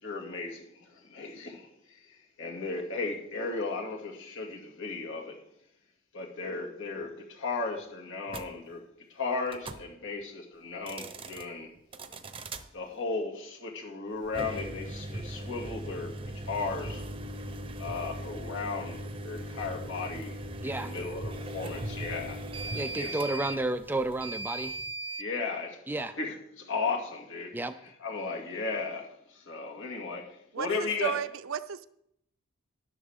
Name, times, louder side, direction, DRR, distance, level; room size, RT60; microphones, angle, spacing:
voice 1, 0.0-5.4 6.1-8.8 9.1-11.7 12.7-17.0 17.8-20.4 20.6-22.4 23.0-23.2 25.2-25.8 26.2-27.6 28.0-31.2, left 4 dB, 60° left, 2.4 m, -35 dB
sound 1, 8.3-8.5 9.5-9.8 10.7-11.4 11.9-12.6 14.2-25.3, right 1 dB, 25° right, 0.8 m, -38 dB
voice 2, 20.6-20.9 22.7-24.8 25.9-26.2 27.5-27.8, right 2 dB, 10° right, 0.4 m, -31 dB
voice 3, 30.5-31.9, right 7 dB, 65° right, 0.6 m, -34 dB
13.0 x 11.0 x 3.6 m
head